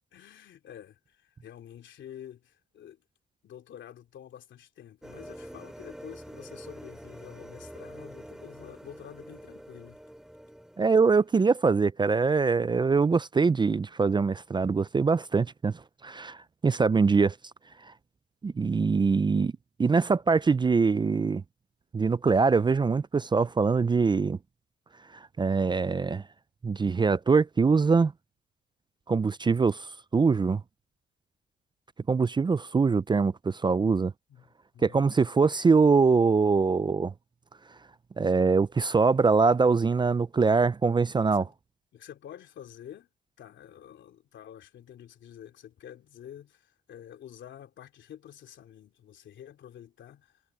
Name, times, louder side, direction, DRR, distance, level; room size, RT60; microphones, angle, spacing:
voice 1, 0.1-3.0 3.4-10.0 34.3-34.5 34.7-35.3 41.3-41.5 41.9-43.1 43.4-50.4, left 10 dB, 70° left, 3.2 m, -48 dB
sound 1, 5.0-11.6, equal, 5° right, 4.0 m, -46 dB
voice 2, 10.8-15.7 16.0-16.4 16.6-17.3 17.9-18.0 18.4-19.5 19.8-21.4 21.9-24.4 25.4-26.2 26.6-28.1 29.1-30.6 32.1-34.1 34.8-37.1 38.2-41.4, right 4 dB, 25° right, 0.5 m, -23 dB
cardioid pair, 90°, 20 cm